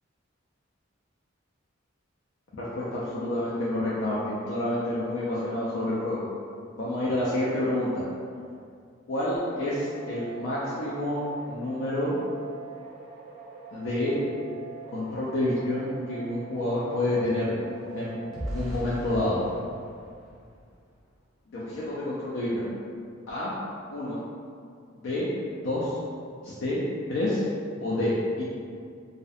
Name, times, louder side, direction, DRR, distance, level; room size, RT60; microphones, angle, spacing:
voice 1, 2.6-6.2 6.8-8.0 9.1-11.2 11.5-12.1 13.7-14.2 14.9-17.6 17.9-18.2 18.5-19.4 21.5-22.7 23.3-23.5 23.9-24.2 25.0-25.3 25.6-26.0 26.4-26.8 27.1-27.4 27.8-28.4, left 1 dB, 75° left, -8 dB, 0.4 m, -28 dB
sound 1, 9.4-18.7, right 5 dB, 55° right, 0.5 m, -44 dB
sound 2, 16.3-21.2 21.8-22.0 22.3-22.6, equal, ahead, 0.6 m, -41 dB
2.5 x 2.0 x 2.4 m, 2.2 s
head